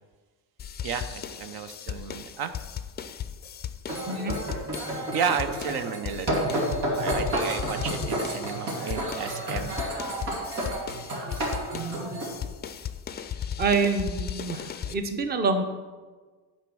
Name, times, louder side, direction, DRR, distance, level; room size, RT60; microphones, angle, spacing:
sound 1, 0.6-15.0, left 8 dB, 25° left, 0.4 m, -37 dB
voice 1, 0.8-2.5 5.1-9.8, right 7 dB, 65° right, 9 dB, 0.6 m, -32 dB
sound 2, 3.9-12.3, right 1 dB, 85° right, 2.6 m, -30 dB
voice 2, 4.1-4.4 11.7-12.2 13.6-15.7, right 4 dB, 25° right, 7 dB, 0.7 m, -27 dB
9.1 x 4.4 x 6.1 m, 1.4 s
cardioid pair, 140°, 39 cm